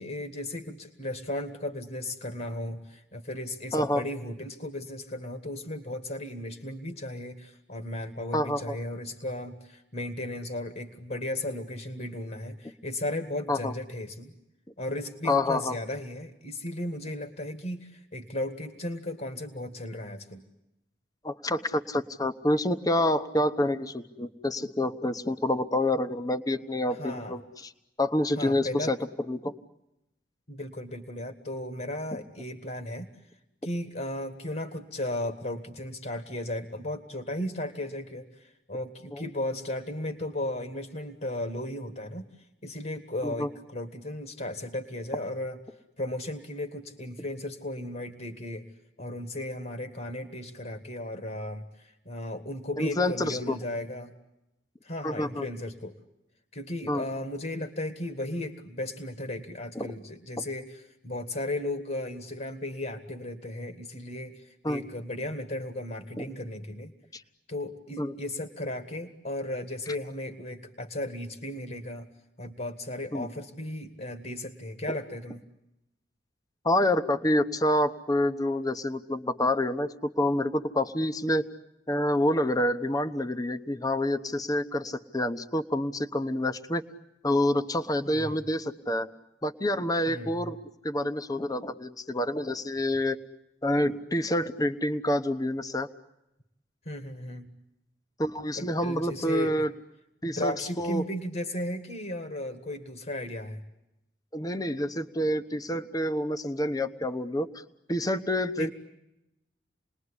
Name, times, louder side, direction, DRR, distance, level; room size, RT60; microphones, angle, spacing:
voice 1, 0.0-14.3 14.8-20.4 26.9-27.4 28.4-28.9 30.5-33.1 33.6-42.3 42.6-45.6 46.0-48.7 49.0-54.1 54.8-56.0 56.5-66.9 67.5-72.1 72.4-75.4 88.1-88.4 90.1-90.6 96.9-97.5 98.6-99.7 100.2-103.6 108.6-108.7, left 1 dB, 50° left, 8 dB, 1.8 m, -35 dB
voice 2, 3.7-4.0 8.3-8.8 13.5-13.7 15.2-15.8 21.2-27.7 28.0-29.0 29.3-29.5 39.1-39.2 43.2-43.5 52.8-53.6 55.0-55.4 56.9-57.0 59.7-59.9 64.6-64.8 66.2-66.3 67.1-67.2 68.0-68.1 73.1-73.3 76.6-81.5 81.9-86.8 87.2-89.1 89.4-90.5 90.8-93.2 93.6-95.9 98.2-99.7 100.2-101.0 104.3-107.6 107.9-108.7, left 1 dB, 20° left, 10 dB, 1.0 m, -27 dB
28.5 x 20.5 x 9.9 m, 0.90 s
head